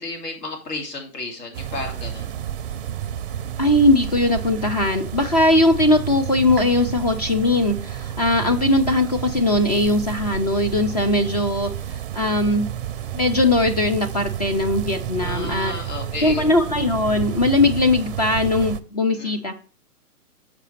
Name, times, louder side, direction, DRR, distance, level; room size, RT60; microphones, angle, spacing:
voice 1, 0.0-2.3 15.2-16.5 19.2-19.4, left 2 dB, 75° left, 2 dB, 2.8 m, -32 dB
sound 1, 1.5-18.8, right 10 dB, 40° right, 0.5 m, -31 dB
voice 2, 3.6-12.7 13.1-15.7 16.2-19.5, left 2 dB, 30° left, 6 dB, 0.4 m, -20 dB
6.6 x 5.0 x 4.5 m, 0.38 s
hypercardioid pair, 135°, 47 cm